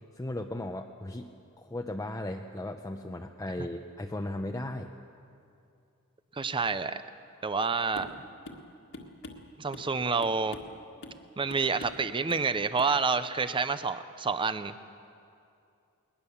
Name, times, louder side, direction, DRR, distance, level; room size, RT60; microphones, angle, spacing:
voice 1, 0.1-1.3 1.6-4.9, left 1 dB, 15° left, 3 dB, 0.6 m, -36 dB
voice 2, 6.3-7.0 7.4-8.2 9.6-10.6 11.4-14.7, right 4 dB, 25° right, 12 dB, 0.6 m, -28 dB
sound 1, 8.0-8.2 8.5-8.7 8.9-9.9 10.2-10.8 11.0-11.2 11.5-12.0 12.3-12.5 12.8-13.0, left 2 dB, 55° left, 1.8 m, -45 dB
21.0 x 20.5 x 7.1 m, 2.5 s
head